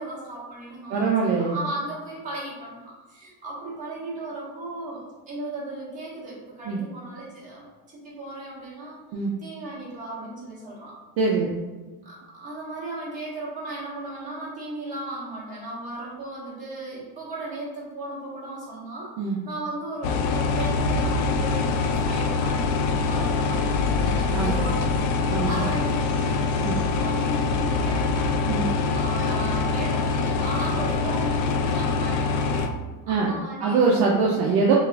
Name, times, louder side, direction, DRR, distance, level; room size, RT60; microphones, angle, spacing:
voice 1, 0.0-10.9 12.0-26.3 27.0-28.6 28.9-32.8 33.1-34.1, right 2 dB, 15° right, -9 dB, 1.5 m, -36 dB
voice 2, 0.9-1.5 6.7-6.8 9.1-9.3 11.2-11.5 19.2-19.4 24.3-24.6 25.3-25.6 26.6-26.8 28.5-28.6 33.1-33.3 33.6-34.7, right 4 dB, 55° right, -2 dB, 0.6 m, -23 dB
sound 1, 20.0-32.7, left 4 dB, 70° left, 0.6 m, -24 dB
6.1 x 2.5 x 2.4 m, 1.3 s
cardioid pair, 175°, 47 cm